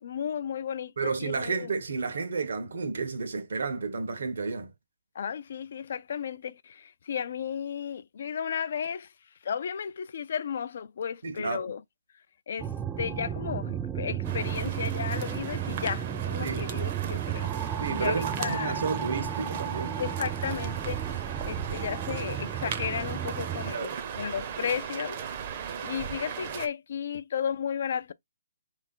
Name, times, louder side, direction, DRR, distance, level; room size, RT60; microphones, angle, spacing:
voice 1, 0.0-1.7 5.2-9.1 9.4-11.8 12.5-12.7 13.0-17.5 18.0-18.8 20.0-25.4 25.8-28.1, left 7 dB, 60° left, 0.3 m, -34 dB
voice 2, 1.0-4.7 11.2-11.7 16.4-16.6 17.8-20.0 23.7-24.0, right 4 dB, 75° right, 1.3 m, -31 dB
sound 1, 12.6-23.7, right 9 dB, 15° right, 0.3 m, -33 dB
sound 2, 14.2-26.7, right 8 dB, 40° right, 0.8 m, -37 dB
3.9 x 3.2 x 3.8 m
hypercardioid pair, 150°, 0 cm